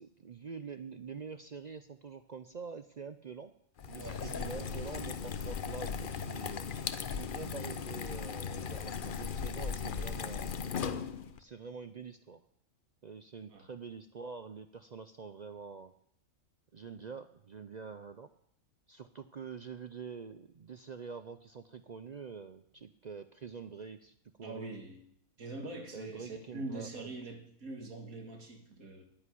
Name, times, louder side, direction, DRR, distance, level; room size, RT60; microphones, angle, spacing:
voice 1, 0.0-3.5 3.9-6.7 7.1-10.5 11.4-12.4 13.0-15.9 16.7-18.3 18.9-24.8 25.9-27.1, right 5 dB, 55° right, 10 dB, 0.5 m, -46 dB
sound 1, 3.8-11.4, left 6 dB, 50° left, 0.7 m, -37 dB
voice 2, 4.0-5.0 13.5-13.7 24.4-25.0 25.4-29.0, right 2 dB, 80° right, 4 dB, 2.4 m, -44 dB
9.9 x 8.8 x 9.8 m, 0.70 s
omnidirectional pair, 1.5 m